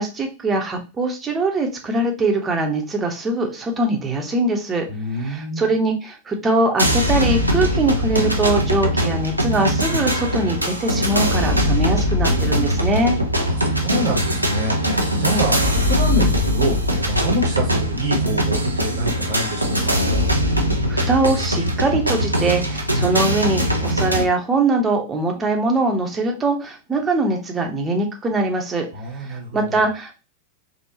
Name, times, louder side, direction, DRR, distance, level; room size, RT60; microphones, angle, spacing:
voice 1, 0.0-4.8 5.1-13.2 20.9-28.9 29.1-30.2, right 2 dB, 20° right, 3 dB, 0.9 m, -22 dB
voice 2, 4.9-5.7 13.4-16.8 17.1-20.0 28.9-29.8, right 1 dB, 55° right, 0 dB, 1.0 m, -26 dB
sound 1, 6.8-24.2, equal, 85° right, 0.5 m, -21 dB
3.5 x 2.4 x 2.8 m, 0.30 s
figure-of-eight pair, 90°, 0 cm